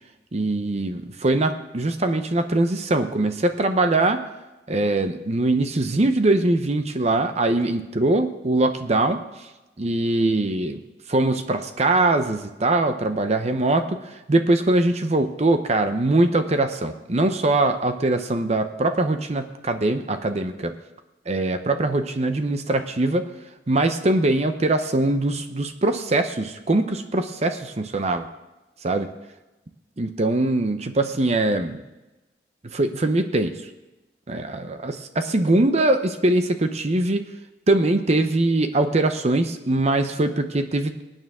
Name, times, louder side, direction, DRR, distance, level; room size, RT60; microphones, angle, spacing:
voice 1, 0.3-4.2 4.7-9.5 9.8-10.8 11.1-20.7 21.3-23.3 23.7-28.3 28.8-29.1 30.0-31.8 32.7-33.5 34.3-37.2 37.7-41.0, right 2 dB, 40° right, 8 dB, 0.7 m, -22 dB
22.5 x 9.2 x 3.6 m, 1.0 s
head